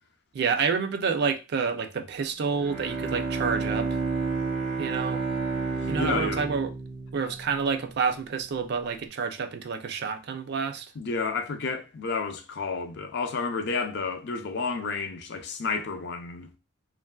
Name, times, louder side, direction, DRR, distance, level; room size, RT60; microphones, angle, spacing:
voice 1, 0.3-4.0 4.8-5.2 5.9-6.7 7.1-10.9, right 5 dB, 55° right, 0.4 m, -28 dB
Bowed string instrument, 2.4-8.1, right 4 dB, 85° right, 1.1 m, -31 dB
voice 2, 5.8-6.5 7.2-7.3 11.0-16.5, left 4 dB, 60° left, 0.5 m, -31 dB
3.0 x 2.5 x 2.2 m
head